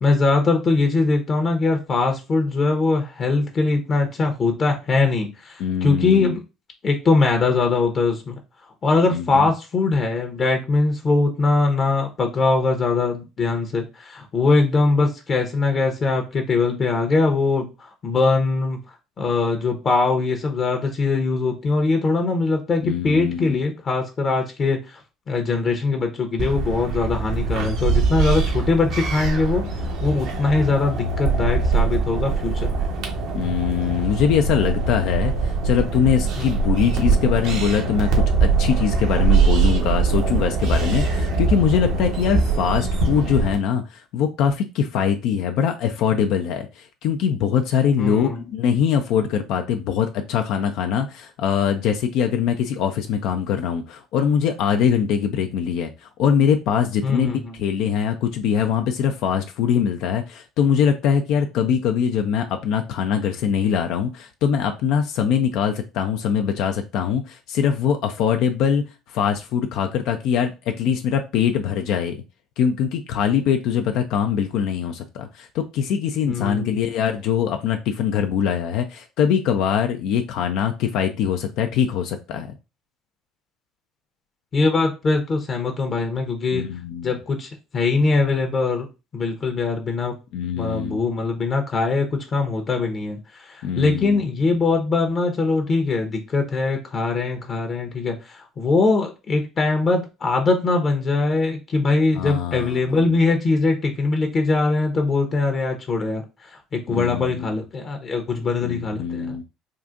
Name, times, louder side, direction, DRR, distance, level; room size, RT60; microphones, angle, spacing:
voice 1, 0.0-6.4 6.8-8.4 8.8-18.8 19.2-25.0 25.3-29.6 30.0-32.9 36.4-36.5 48.0-48.4 57.0-57.6 76.3-76.9 84.5-86.6 87.0-88.9 89.1-90.1 90.5-109.4, left 3 dB, 40° left, 0.7 m, -22 dB
voice 2, 5.6-6.3 9.1-9.5 22.8-23.6 33.3-57.3 57.6-68.8 69.1-72.2 72.6-82.5 86.5-87.2 90.3-91.0 93.6-94.2 102.1-103.0 106.9-107.5 108.6-109.4, left 7 dB, 65° left, 0.3 m, -22 dB
sound 1, 26.4-43.5, right 4 dB, 65° right, 0.8 m, -22 dB
3.8 x 2.4 x 2.4 m
hypercardioid pair, 60°, 0 cm